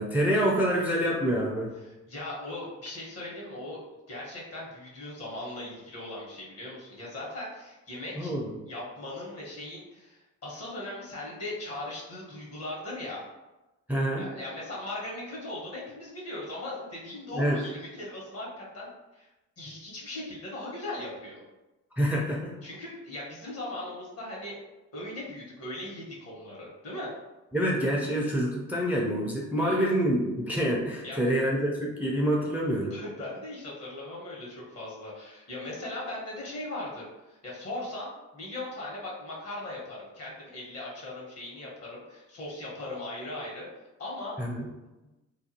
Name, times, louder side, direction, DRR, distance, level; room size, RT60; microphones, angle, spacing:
voice 1, 0.0-1.7 8.2-8.5 13.9-14.3 17.3-17.6 22.0-22.6 27.5-32.9 44.4-44.6, equal, 5° right, -3 dB, 0.4 m, -27 dB
voice 2, 1.8-3.8 4.1-8.3 8.7-13.3 14.2-19.3 19.6-21.4 22.6-24.6 24.9-27.1 29.6-29.9 31.0-31.3 32.9-43.7 44.0-44.4, left 1 dB, 55° left, -4 dB, 1.2 m, -39 dB
2.5 x 2.3 x 2.8 m, 1.0 s
cardioid pair, 90°, 30 cm